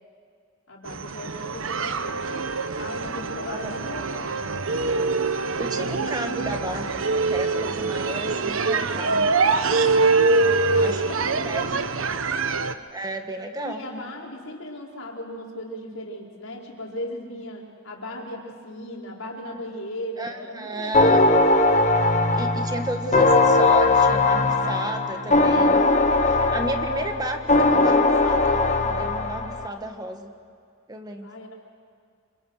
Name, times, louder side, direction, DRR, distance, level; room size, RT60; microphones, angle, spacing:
voice 1, 0.7-2.3 2.8-4.4 10.7-11.7 13.6-21.2 24.4-24.8 31.2-31.5, left 1 dB, 80° left, -2 dB, 4.9 m, -37 dB
sound 1, 0.9-12.7, right 3 dB, 80° right, 1.1 m, -24 dB
voice 2, 3.5-4.0 5.5-9.3 10.8-11.0 11.3-11.7 12.9-13.8 20.2-21.2 22.4-25.8 26.2-30.3 30.9-31.3, right 1 dB, 20° right, 5 dB, 1.6 m, -33 dB
sound 2, 20.9-29.7, left 2 dB, 35° left, 1.4 m, -19 dB
27.5 x 27.5 x 6.5 m, 2.2 s
head